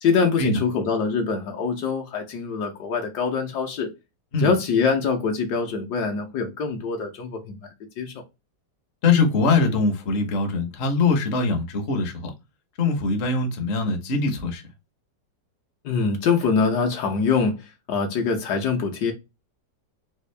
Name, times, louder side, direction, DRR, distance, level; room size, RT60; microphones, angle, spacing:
voice 1, 0.0-3.9 4.4-7.7 8.0-8.1 15.8-19.1, left 5 dB, 70° left, 1.1 m, -24 dB
voice 2, 9.0-12.3 12.8-14.6, left 4 dB, 50° left, 0.8 m, -22 dB
3.5 x 2.4 x 3.1 m
omnidirectional pair, 2.0 m